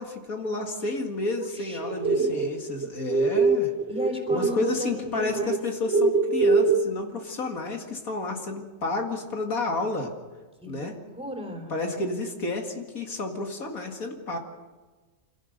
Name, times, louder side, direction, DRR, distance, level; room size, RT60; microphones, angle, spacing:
voice 1, 0.0-3.7 4.3-10.1 10.7-10.9 11.7-14.4, left 2 dB, 80° left, 2 dB, 2.5 m, -31 dB
voice 2, 1.4-2.3 3.9-5.6 10.6-11.7, equal, 5° right, 4 dB, 3.6 m, -35 dB
sound 1, 1.5-4.7 5.0-6.8, right 4 dB, 50° right, 1.0 m, -23 dB
26.5 x 17.0 x 6.7 m, 1.3 s
omnidirectional pair, 1.5 m